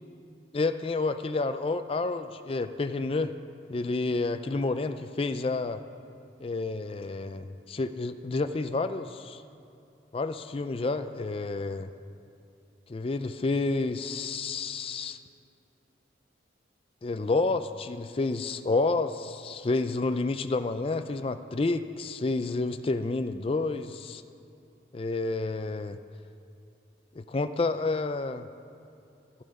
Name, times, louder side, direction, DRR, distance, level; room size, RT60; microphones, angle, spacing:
voice 1, 0.5-3.3 3.7-5.8 6.4-9.4 10.1-11.9 12.9-15.2 17.0-24.2 24.9-26.0 27.2-28.5, left 3 dB, 30° left, 10 dB, 0.4 m, -29 dB
12.5 x 11.5 x 5.3 m, 2.7 s
head